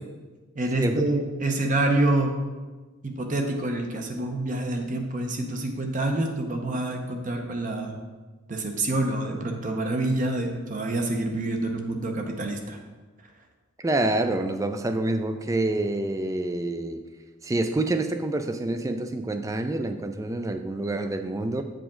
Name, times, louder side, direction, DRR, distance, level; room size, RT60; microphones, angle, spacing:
voice 1, 0.5-2.3 3.0-7.9 8.5-12.8, right 2 dB, 35° right, 3 dB, 0.7 m, -27 dB
voice 2, 13.8-17.0 17.4-21.6, right 2 dB, 15° right, 8 dB, 0.3 m, -27 dB
8.2 x 5.0 x 3.7 m, 1.3 s
head